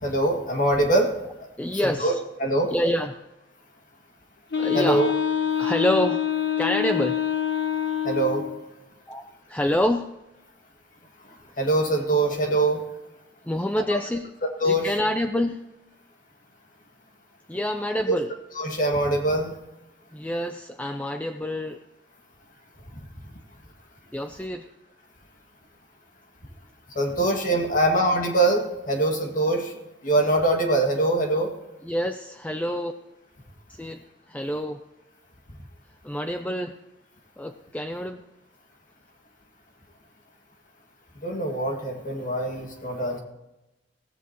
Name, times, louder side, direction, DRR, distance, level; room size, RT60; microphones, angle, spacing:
voice 1, 0.0-1.1 1.8-2.1 2.4-2.7 4.7-5.1 8.0-8.4 11.6-12.8 13.9-14.0 14.6-14.8 18.1-18.2 18.6-19.6 27.0-29.7 30.0-31.5 41.2-43.2, right 2 dB, 45° left, 2 dB, 2.0 m, -23 dB
voice 2, 1.6-2.2 2.7-3.2 4.6-5.1 5.6-6.3 6.6-7.2 9.1-9.2 9.5-10.1 13.4-14.3 14.6-15.6 17.5-18.3 20.1-21.8 24.1-24.7 31.8-32.9 33.7-34.8 36.0-36.7 37.4-38.2, left 1 dB, 10° left, 6 dB, 0.5 m, -27 dB
Wind instrument woodwind instrument, 4.5-8.6, left 9 dB, 75° left, 1.2 m, -25 dB
16.0 x 14.5 x 3.0 m, 0.97 s
head